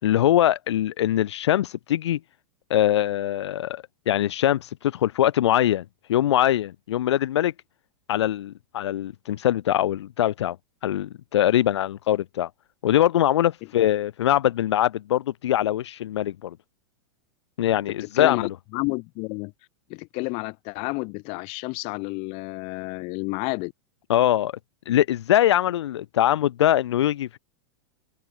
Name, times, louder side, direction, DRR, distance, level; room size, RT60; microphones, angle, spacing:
voice 1, 0.0-2.2 2.7-7.5 8.1-10.6 10.8-12.5 12.8-16.6 17.6-18.5 24.1-24.5 24.9-27.4, left 12 dB, 80° left, 5.9 m, -22 dB
voice 2, 18.0-19.5 19.9-23.7, left 30 dB, 40° left, 7.0 m, -30 dB
supercardioid pair, 150°, 14 cm